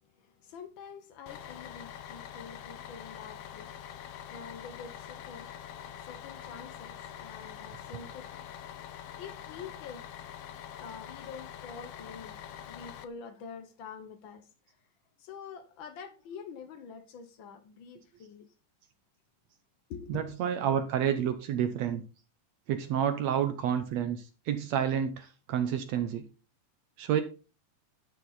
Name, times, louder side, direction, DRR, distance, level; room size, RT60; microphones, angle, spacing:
voice 1, 0.0-3.7 4.1-8.4 9.2-10.1 10.8-12.4 12.6-14.5 15.2-18.5 19.9-20.3, left 6 dB, 90° left, 1.0 m, -46 dB
Bus, 1.3-13.0, left 10 dB, 70° left, 1.5 m, -45 dB
voice 2, 20.1-22.0 22.7-26.2 27.0-27.2, right 9 dB, 70° right, 1.8 m, -29 dB
11.5 x 6.8 x 4.1 m
omnidirectional pair, 3.6 m